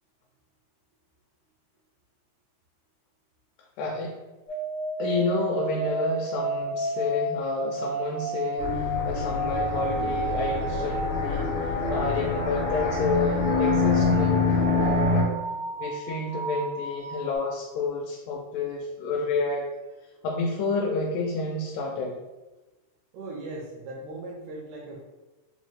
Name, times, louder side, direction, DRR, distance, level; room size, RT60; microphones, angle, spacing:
voice 1, 3.8-4.2 5.0-15.2 15.8-19.7 20.0-22.2, left 3 dB, 85° left, 0 dB, 2.1 m, -30 dB
sound 1, 4.5-17.4, right 1 dB, 65° right, 0.9 m, -32 dB
sound 2, 8.6-15.2, left 3 dB, 70° left, 1.2 m, -26 dB
voice 2, 23.1-25.0, right 2 dB, 80° right, -2 dB, 1.7 m, -38 dB
5.3 x 2.0 x 3.1 m, 1.1 s
omnidirectional pair, 3.8 m